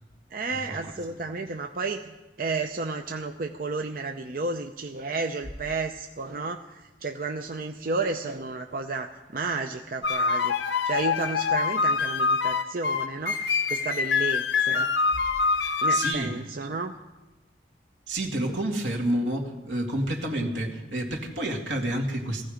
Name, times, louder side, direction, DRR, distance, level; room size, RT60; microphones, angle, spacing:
voice 1, 0.3-10.5 10.8-14.9 15.8-16.9, right 3 dB, 50° right, 5 dB, 0.6 m, -32 dB
sound 1, 10.0-16.1, left 5 dB, 80° left, 0.8 m, -25 dB
voice 2, 15.9-16.3 18.1-22.4, right 1 dB, 80° right, 1 dB, 2.4 m, -29 dB
18.5 x 15.0 x 5.1 m, 1.1 s
head